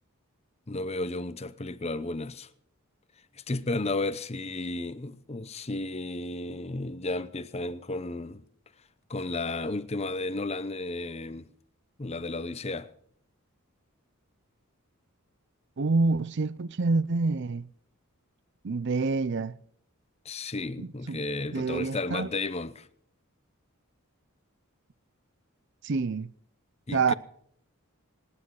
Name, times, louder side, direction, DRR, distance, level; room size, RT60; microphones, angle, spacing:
voice 1, 0.7-2.5 3.4-8.4 9.1-11.5 12.0-12.9 20.2-22.9 26.9-27.1, left 2 dB, 30° left, 0.7 m, -33 dB
voice 2, 15.8-17.7 18.6-19.5 20.8-21.2 21.5-22.3 25.8-26.3 26.9-27.1, right 3 dB, 55° right, 0.5 m, -27 dB
26.5 x 9.7 x 4.8 m
head